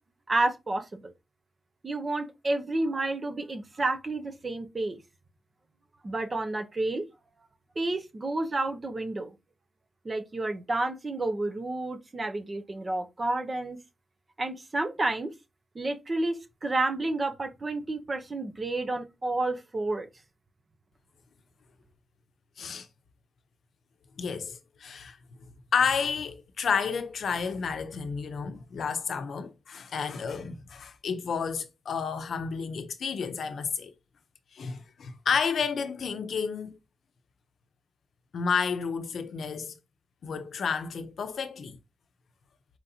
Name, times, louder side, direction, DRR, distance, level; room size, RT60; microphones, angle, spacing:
voice 1, 0.3-1.1 1.8-5.0 6.0-7.0 7.8-9.3 10.0-13.8 14.4-15.3 15.7-20.1, right 2 dB, 30° right, 0.7 m, -30 dB
voice 2, 24.2-25.2 25.7-33.9 34.5-36.8 38.3-39.8 40.2-41.8, left 6 dB, 80° left, 0.6 m, -31 dB
4.4 x 4.0 x 2.7 m
wide cardioid pair, 145°, 0 cm